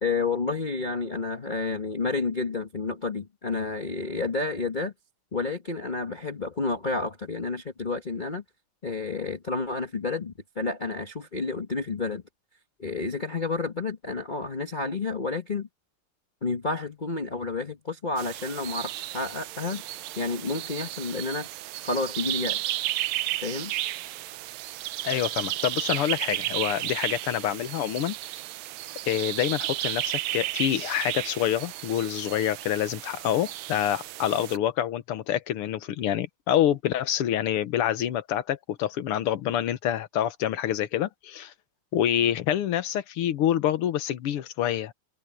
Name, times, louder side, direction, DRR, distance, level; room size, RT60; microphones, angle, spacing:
voice 1, 0.0-4.9 5.3-8.4 8.8-12.2 12.8-15.7 16.4-19.8 20.2-21.5 21.8-22.8 23.4-23.7, left 3 dB, 25° left, 1.3 m, -30 dB
sound 1, 18.2-34.6, right 15 dB, 80° right, 1.4 m, -33 dB
voice 2, 25.0-28.2 29.1-41.5 41.9-44.9, left 11 dB, 90° left, 2.0 m, -27 dB
open air
omnidirectional pair, 2.4 m